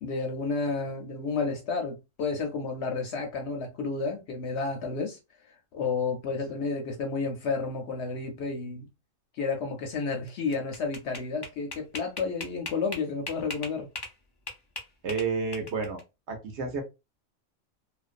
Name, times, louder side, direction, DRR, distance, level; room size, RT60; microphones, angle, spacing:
voice 1, 0.0-5.2 5.7-8.9 9.4-13.9, left 4 dB, 65° left, 0.7 m, -31 dB
sound 1, 10.3-14.2 14.5-16.0, left 3 dB, 40° left, 0.3 m, -38 dB
voice 2, 15.0-16.0 16.3-16.8, right 4 dB, 60° right, 0.9 m, -30 dB
2.4 x 2.1 x 2.4 m
omnidirectional pair, 1.4 m